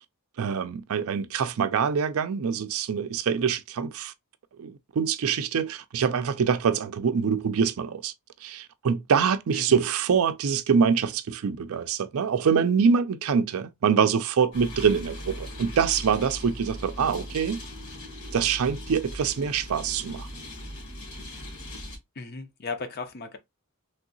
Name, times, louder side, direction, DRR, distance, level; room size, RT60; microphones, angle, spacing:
voice 1, 0.4-4.1 4.6-8.1 8.4-17.6 18.3-20.3, right 6 dB, 65° right, 0.4 m, -25 dB
voice 2, 9.5-9.8 22.2-23.4, left 4 dB, 45° left, 0.6 m, -36 dB
sound 1, 14.5-22.0, equal, 70° left, 1.4 m, -39 dB
3.3 x 2.7 x 2.6 m
head